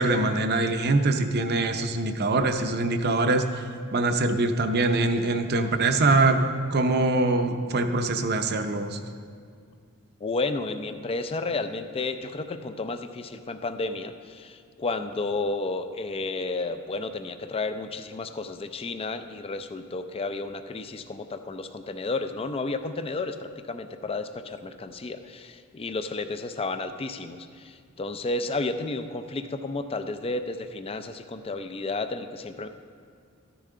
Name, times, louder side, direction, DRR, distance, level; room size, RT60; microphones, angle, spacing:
voice 1, 0.0-3.6 3.9-6.4 6.7-9.0, right 2 dB, 50° right, 7 dB, 0.6 m, -23 dB
voice 2, 10.2-32.7, left 3 dB, 25° left, 8 dB, 0.4 m, -32 dB
13.5 x 10.0 x 3.7 m, 2.1 s
head